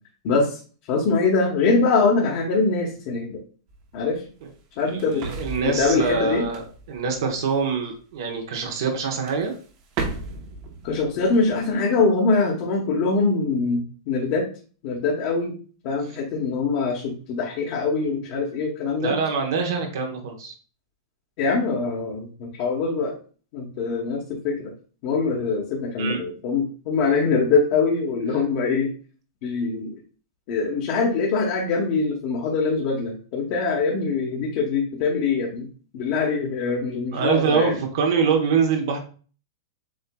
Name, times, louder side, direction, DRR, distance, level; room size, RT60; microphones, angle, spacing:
voice 1, 0.2-0.6 0.9-3.4 3.9-4.2 4.8-5.2 5.6-6.4 10.8-14.4 14.8-15.5 15.8-19.2 21.4-23.1 23.5-24.7 25.0-28.9 29.4-29.9 30.5-35.7 35.9-37.7, left 4 dB, 45° left, -2 dB, 1.0 m, -23 dB
sound 1, 3.7-8.0 8.8-9.0 9.2-11.7, right 3 dB, 40° right, 0.9 m, -36 dB
voice 2, 4.8-6.6 6.9-9.5 19.0-20.5 26.0-26.2 37.1-39.0, right 5 dB, 65° right, 2 dB, 1.0 m, -24 dB
7.5 x 2.8 x 2.3 m, 0.40 s
hypercardioid pair, 145°, 2 cm